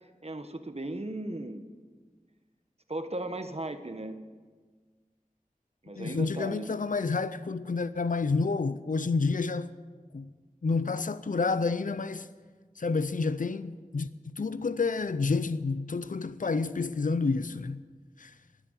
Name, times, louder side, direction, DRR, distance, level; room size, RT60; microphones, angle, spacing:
voice 1, 0.0-1.6 2.9-4.2 5.8-6.7, right 1 dB, 45° right, 1.3 m, -37 dB
voice 2, 6.0-9.7 10.1-10.3 10.6-12.3 12.8-17.8 18.2-18.3, left 4 dB, 65° left, 0.5 m, -29 dB
13.0 x 10.5 x 9.6 m
wide cardioid pair, 40°, 15 cm